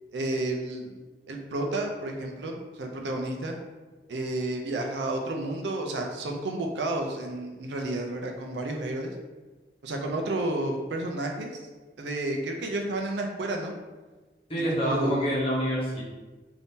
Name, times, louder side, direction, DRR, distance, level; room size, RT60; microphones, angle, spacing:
voice 1, 0.1-1.0 1.3-3.5 4.1-9.1 9.8-11.5 12.0-13.7 14.8-15.3, right 2 dB, 80° right, 2 dB, 0.5 m, -31 dB
voice 2, 14.5-16.0, equal, 30° left, -6 dB, 0.9 m, -27 dB
2.7 x 2.7 x 3.5 m, 1.3 s
head